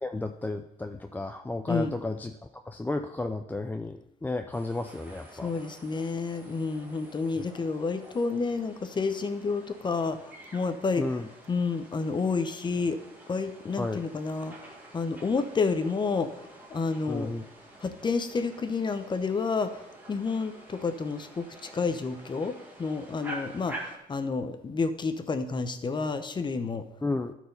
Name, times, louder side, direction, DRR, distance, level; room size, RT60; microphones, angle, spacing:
voice 1, 0.0-2.3 2.7-5.5 11.0-11.2 13.8-14.0 17.1-17.4 27.0-27.3, left 2 dB, 10° left, 6 dB, 0.4 m, -32 dB
sound 1, 4.5-24.0, right 1 dB, 10° right, 2.0 m, -48 dB
voice 2, 5.4-10.2 10.5-11.1 11.5-13.0 13.3-14.5 14.9-16.3 16.7-17.3 17.8-19.8 20.1-22.5 22.8-26.8, left 4 dB, 25° left, 9 dB, 0.8 m, -29 dB
12.5 x 4.7 x 5.3 m, 0.85 s
cardioid pair, 110°, 17 cm